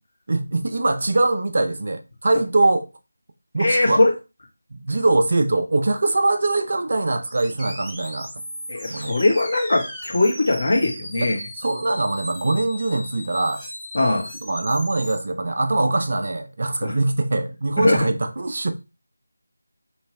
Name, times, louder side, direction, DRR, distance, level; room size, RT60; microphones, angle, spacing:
voice 1, 0.3-2.9 3.5-4.0 4.7-8.3 8.9-9.2 11.2-13.6 14.4-18.7, right 2 dB, 50° right, 0.5 m, -22 dB
voice 2, 3.6-4.1 8.7-11.4 13.9-14.3 16.8-16.9 17.8-18.1, left 2 dB, 55° left, 1.6 m, -20 dB
sound 1, 7.2-15.2, equal, ahead, 0.7 m, -37 dB
3.2 x 3.2 x 3.2 m
figure-of-eight pair, 165°, 0 cm